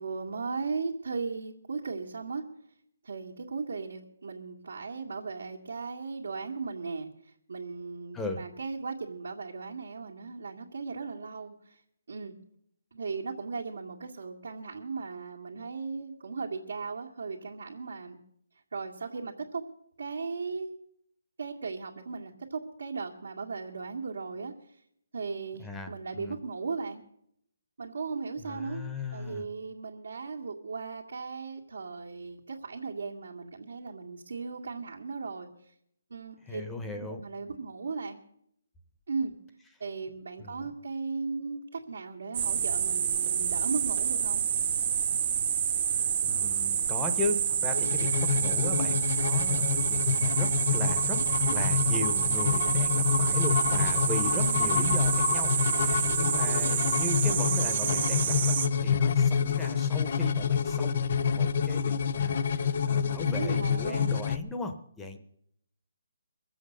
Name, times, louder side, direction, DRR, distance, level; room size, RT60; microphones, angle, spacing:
voice 1, 0.0-2.4 3.0-11.8 12.1-12.3 12.9-18.2 18.7-19.6 20.0-20.8 21.4-24.8 25.1-27.0 27.8-28.9 29.1-35.5 36.1-36.6 37.0-38.2 39.1-39.3 39.8-44.5 54.3-54.7 63.2-64.2, right 4 dB, 75° right, -2 dB, 1.9 m, -37 dB
voice 2, 25.6-26.4 28.4-29.5 36.5-37.2 40.4-40.7 45.9-51.2 51.5-65.2, left 2 dB, 5° left, 5 dB, 0.7 m, -37 dB
sound 1, 42.3-58.7, right 8 dB, 30° right, 0.9 m, -28 dB
sound 2, 47.7-64.4, left 7 dB, 45° left, 0.6 m, -28 dB
22.5 x 7.6 x 6.5 m, 0.71 s
hypercardioid pair, 170°, 0 cm